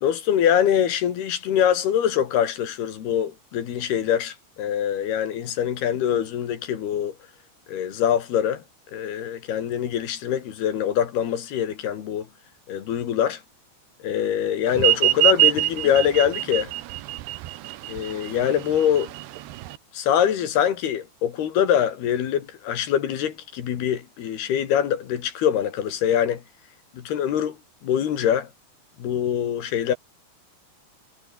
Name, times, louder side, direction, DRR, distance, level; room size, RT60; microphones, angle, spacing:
voice 1, 0.0-7.2 7.7-8.6 8.9-12.3 12.7-13.4 14.0-16.7 17.9-19.1 19.9-26.4 26.9-27.6 27.8-28.5 29.0-30.0, left 9 dB, 70° left, 4.2 m, -24 dB
sound 1, 14.8-19.8, right 15 dB, 80° right, 3.1 m, -23 dB
omnidirectional pair, 4.9 m